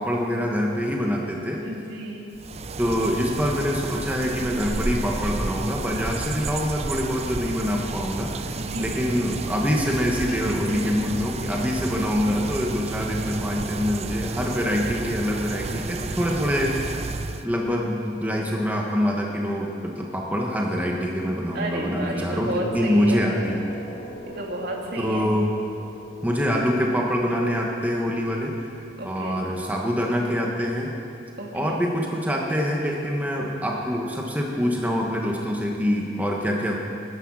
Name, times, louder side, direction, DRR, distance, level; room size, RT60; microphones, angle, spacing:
voice 1, 0.0-1.6 2.8-8.5 8.8-16.9 17.4-23.7 25.0-25.5 26.2-28.5 29.0-30.9 31.5-36.7, equal, 10° right, -1 dB, 1.4 m, -25 dB
voice 2, 1.6-2.3 8.6-9.2 10.4-10.8 21.5-23.2 24.3-25.3 29.0-29.4 31.4-31.8, right 1 dB, 60° right, -1 dB, 2.5 m, -32 dB
sound 1, 2.3-17.4, right 3 dB, 35° right, 0.6 m, -31 dB
sound 2, 21.4-29.4, equal, 90° left, 3.6 m, -41 dB
20.5 x 10.5 x 6.4 m, 2.6 s
head